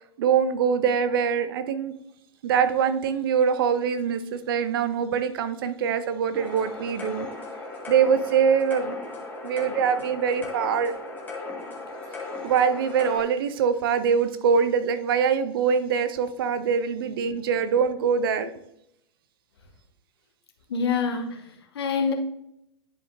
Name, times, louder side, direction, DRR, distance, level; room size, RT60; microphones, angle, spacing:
voice 1, 0.0-1.9 2.4-7.3 7.9-9.0 9.4-10.9 12.4-18.5, right 7 dB, 50° right, 11 dB, 0.7 m, -23 dB
sound 1, 6.3-13.2, left 3 dB, 10° left, 1.7 m, -36 dB
voice 2, 20.7-22.1, left 5 dB, 60° left, 3 dB, 1.4 m, -26 dB
11.0 x 4.9 x 2.6 m, 0.77 s
figure-of-eight pair, 100°, 15 cm